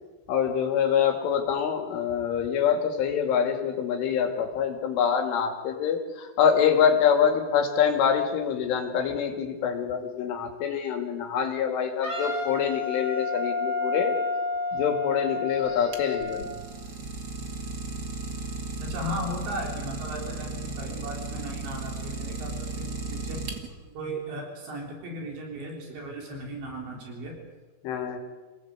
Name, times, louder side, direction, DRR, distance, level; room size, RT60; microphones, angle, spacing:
voice 1, 0.3-14.2 14.7-16.7 27.8-28.2, left 8 dB, 75° left, 4 dB, 5.0 m, -25 dB
Wind instrument woodwind instrument, 12.0-16.5, left 3 dB, 15° left, 3.9 m, -30 dB
Idling, 15.6-24.0, right 3 dB, 80° right, 0.9 m, -35 dB
voice 2, 18.8-23.5 23.9-27.4, equal, 65° right, 0 dB, 5.9 m, -36 dB
27.5 x 18.5 x 8.3 m, 1.3 s
omnidirectional pair, 5.8 m